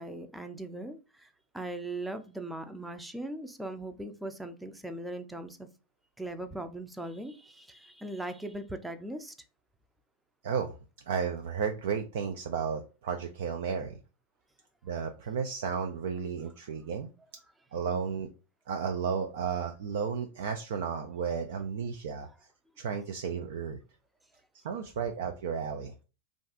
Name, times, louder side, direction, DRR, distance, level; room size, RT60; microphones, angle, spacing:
voice 1, 0.0-5.7 6.2-9.3, right 1 dB, 5° right, 8 dB, 0.4 m, -39 dB
voice 2, 10.4-10.7 11.1-14.0 14.8-17.1 17.7-18.3 18.7-22.3 22.8-23.8 24.5-25.9, right 6 dB, 70° right, 5 dB, 0.3 m, -33 dB
2.5 x 2.3 x 3.6 m, 0.32 s
hypercardioid pair, 100°, 0 cm